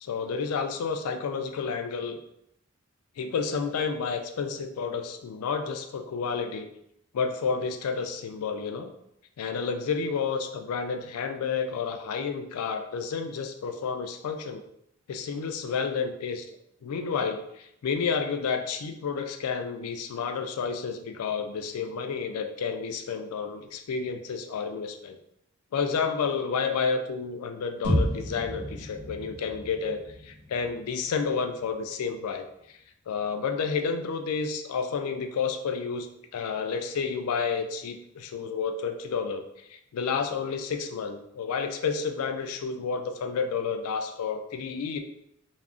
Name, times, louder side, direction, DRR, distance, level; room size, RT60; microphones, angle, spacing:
voice 1, 0.0-2.2 3.2-6.7 7.1-8.9 9.4-14.6 15.1-16.4 16.8-25.2 25.7-32.4 33.1-36.1 36.3-39.4 39.7-45.0, left 5 dB, 85° left, 6 dB, 0.4 m, -30 dB
sound 1, 27.8-31.8, equal, 20° right, 1.0 m, -32 dB
2.4 x 2.1 x 3.5 m, 0.77 s
head